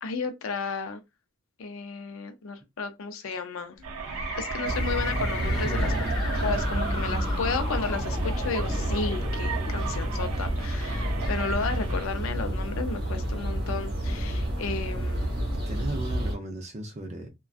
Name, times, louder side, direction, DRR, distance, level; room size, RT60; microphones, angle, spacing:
voice 1, 0.0-1.0 1.6-3.8 4.4-5.9 6.4-15.4, left 4 dB, 70° left, 0.5 m, -33 dB
sound 1, 3.8-9.8 10.6-10.7 11.2-11.5, left 3 dB, 35° left, 1.1 m, -38 dB
sound 2, 3.8-12.1, right 5 dB, 85° right, 0.5 m, -37 dB
sound 3, 4.6-16.3, equal, 45° right, 0.9 m, -29 dB
voice 2, 5.4-5.9 15.7-17.3, right 1 dB, 30° right, 0.5 m, -36 dB
2.4 x 2.2 x 2.4 m
head